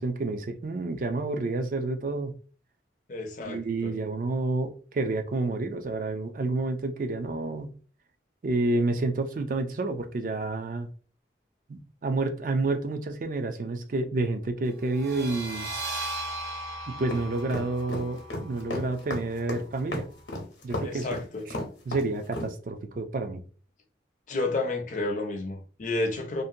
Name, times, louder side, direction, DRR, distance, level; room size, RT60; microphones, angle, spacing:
voice 1, 0.0-2.3 3.5-7.7 8.4-10.9 11.7-15.7 16.9-20.1 20.6-21.1 21.9-23.4, right 2 dB, 45° right, 0.3 m, -29 dB
voice 2, 3.1-3.9 20.8-21.5 24.3-26.4, left 2 dB, 45° left, 0.5 m, -31 dB
sound 1, 14.9-20.3, right 2 dB, 75° right, 0.7 m, -38 dB
sound 2, 17.1-22.5, left 1 dB, 80° left, 0.8 m, -33 dB
2.6 x 2.1 x 2.6 m
head